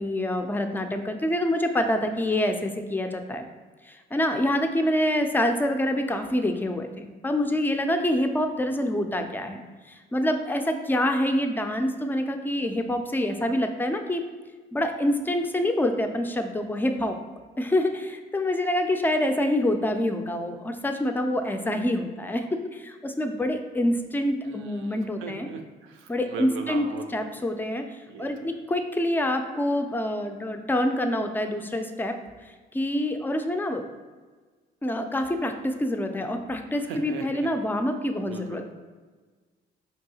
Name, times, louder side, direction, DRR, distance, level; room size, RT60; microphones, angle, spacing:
voice 1, 0.0-3.4 3.8-9.6 9.9-14.2 14.7-17.2 17.6-25.5 26.1-33.9 34.8-38.6, left 1 dB, 10° left, 6 dB, 0.3 m, -26 dB
voice 2, 24.4-27.0 28.1-28.3 36.9-37.5 38.2-38.6, right 5 dB, 85° right, 5 dB, 0.5 m, -38 dB
4.5 x 2.7 x 2.8 m, 1.4 s
cardioid pair, 90°, 20 cm